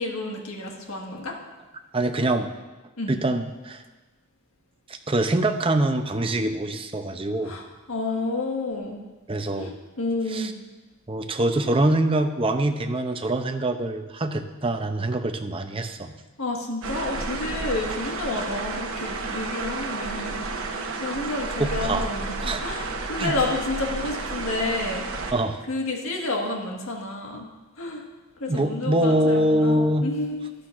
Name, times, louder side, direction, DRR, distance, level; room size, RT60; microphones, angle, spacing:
voice 1, 0.0-1.3 3.0-3.1 7.4-9.0 9.6-10.5 16.4-20.4 21.0-25.1 25.7-27.5 27.8-28.0 28.4-30.5, left 2 dB, 80° left, 0 dB, 1.7 m, -30 dB
voice 2, 1.9-2.5 3.1-3.8 4.9-7.6 9.3-9.7 10.3-10.5 11.1-16.1 21.6-22.1 22.4-22.6 23.2-23.4 25.3-25.6 28.5-30.1, right 1 dB, 25° right, 7 dB, 0.6 m, -24 dB
sound 1, 16.8-25.3, right 3 dB, 75° right, 1.0 m, -31 dB
13.0 x 11.5 x 2.6 m, 1.2 s
head